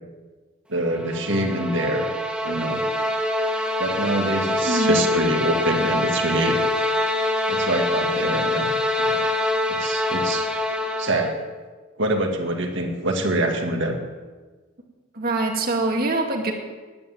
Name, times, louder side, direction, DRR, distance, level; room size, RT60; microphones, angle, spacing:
voice 1, 0.7-2.1 2.4-2.8 3.8-6.6 7.5-8.7 9.0-9.2 9.7-10.5 11.0-11.4 12.0-14.0, right 1 dB, 60° right, 3 dB, 2.1 m, -25 dB
sound 1, 0.8-11.4, left 1 dB, 5° right, 1.0 m, -24 dB
voice 2, 4.6-5.0 15.1-16.5, right 2 dB, 45° right, 2 dB, 2.1 m, -23 dB
10.5 x 9.7 x 9.3 m, 1.3 s
head